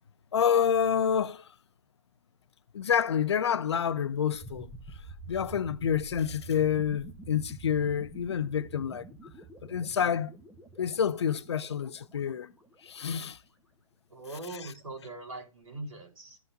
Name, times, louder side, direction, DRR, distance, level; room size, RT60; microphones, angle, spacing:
voice 1, 0.3-1.5 2.7-4.7 5.3-9.1 9.6-10.3 10.8-12.5 12.8-13.4, left 8 dB, 50° left, 0.5 m, -28 dB
sound 1, 4.3-13.2, right 2 dB, ahead, 0.9 m, -48 dB
voice 2, 14.1-16.4, right 2 dB, 75° right, 3.8 m, -41 dB
14.5 x 5.5 x 2.6 m
figure-of-eight pair, 130°, 18 cm